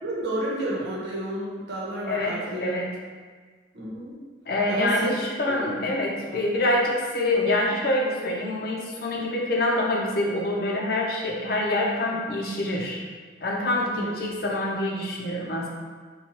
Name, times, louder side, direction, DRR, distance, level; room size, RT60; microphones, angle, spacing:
voice 1, 0.0-2.7 3.7-4.2 4.7-5.6 5.9-6.0 6.2-6.5 13.9-14.1, right 1 dB, 70° right, -5 dB, 0.9 m, -31 dB
voice 2, 2.1-2.9 4.5-13.0 13.4-15.7, left 1 dB, 55° left, -2 dB, 0.6 m, -26 dB
4.4 x 2.3 x 2.9 m, 1.5 s
head